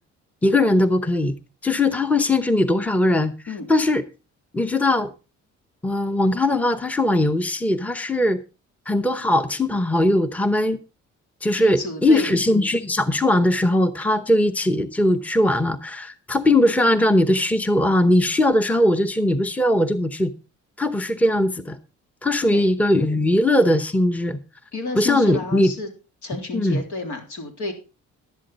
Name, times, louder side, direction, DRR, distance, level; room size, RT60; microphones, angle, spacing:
voice 1, 0.4-1.3 1.6-3.3 3.7-4.0 4.5-5.1 5.8-8.4 8.9-10.8 11.4-20.3 20.8-21.8 22.2-24.4 24.9-25.7 26.5-26.8, left 1 dB, 5° left, 0.9 m, -20 dB
voice 2, 11.5-12.4 22.4-22.7 24.7-25.9 26.2-27.7, left 2 dB, 75° left, 3.4 m, -31 dB
11.5 x 11.0 x 4.1 m
cardioid pair, 90°, 30 cm